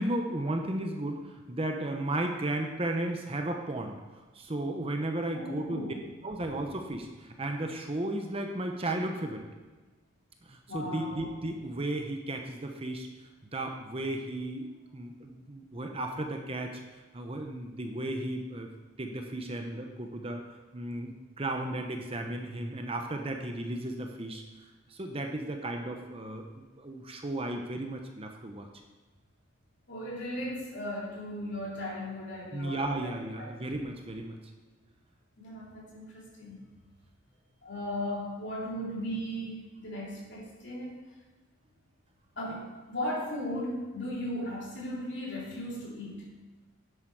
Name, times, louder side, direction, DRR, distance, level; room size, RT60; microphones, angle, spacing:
voice 1, 0.0-4.0 4.3-5.8 6.2-9.5 10.5-13.1 13.5-16.7 17.1-18.7 19.0-20.4 20.7-24.4 24.9-28.7 32.5-34.4, right 1 dB, 30° right, 4 dB, 0.9 m, -34 dB
voice 2, 5.3-6.1 10.7-11.3 29.9-33.1 33.4-33.5 35.4-36.6 37.6-41.0 42.4-46.3, left 1 dB, 60° left, -4 dB, 3.4 m, -37 dB
10.0 x 8.1 x 4.8 m, 1.3 s
head